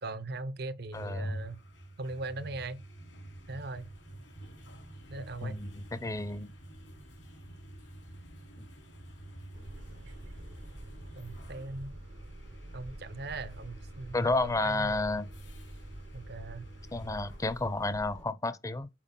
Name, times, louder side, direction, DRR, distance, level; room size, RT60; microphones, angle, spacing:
voice 1, 0.0-1.6 2.0-2.8 3.5-3.9 5.1-5.6 11.2-11.9 12.7-15.1 16.1-16.7, right 2 dB, 60° right, 0.8 m, -39 dB
sound 1, 0.8-17.9, right 1 dB, 85° left, 3.3 m, -49 dB
voice 2, 0.9-1.4 5.4-6.5 14.1-15.3 16.9-18.9, left 2 dB, 20° left, 0.6 m, -31 dB
sound 2, 9.5-18.3, right 1 dB, 85° right, 1.5 m, -48 dB
7.5 x 4.7 x 5.4 m
head